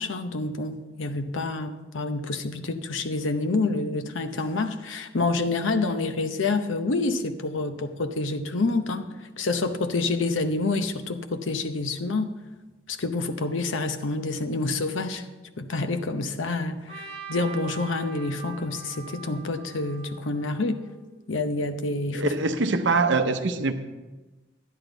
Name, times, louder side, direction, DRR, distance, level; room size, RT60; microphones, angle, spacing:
voice 1, 0.0-12.3 12.9-15.3 15.6-20.8 21.3-22.3, left 3 dB, 80° left, 7 dB, 0.8 m, -28 dB
Trumpet, 16.9-21.0, right 6 dB, 35° right, 2.5 m, -43 dB
voice 2, 22.1-23.7, right 3 dB, 70° right, 8 dB, 0.7 m, -23 dB
11.0 x 11.0 x 4.0 m, 1.2 s
head